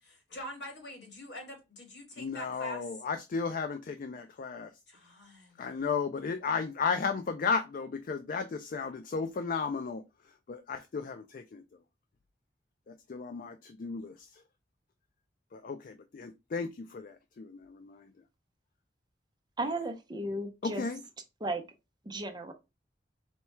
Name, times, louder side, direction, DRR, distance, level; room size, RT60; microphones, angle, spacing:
voice 1, 0.0-2.9 4.9-5.8, equal, 70° left, 1.7 m, -45 dB
voice 2, 2.2-4.7 5.6-10.0 10.5-11.6 12.9-14.1 15.5-18.1 20.6-21.0, left 5 dB, 50° left, 0.4 m, -34 dB
voice 3, 19.6-20.8 21.4-21.6 22.0-22.5, right 2 dB, 25° right, 0.6 m, -34 dB
4.4 x 2.3 x 4.2 m
head